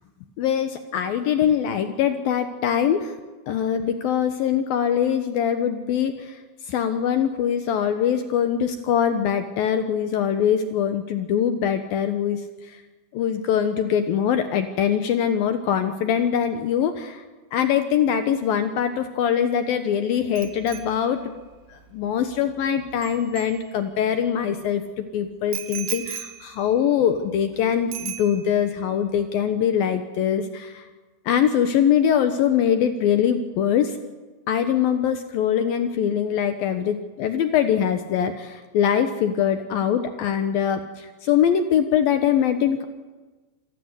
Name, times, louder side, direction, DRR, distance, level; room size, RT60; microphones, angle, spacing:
voice 1, 0.4-3.2 3.5-6.4 6.7-12.8 13.1-17.2 17.5-21.3 21.7-30.9 31.3-34.0 34.5-42.9, left 8 dB, 70° left, 8 dB, 2.5 m, -23 dB
Bicycle bell, 20.4-24.2 25.5-27.6 27.9-28.8 29.1-29.3, right 10 dB, 65° right, 3.3 m, -38 dB
27.0 x 15.0 x 9.8 m, 1.3 s
omnidirectional pair, 4.9 m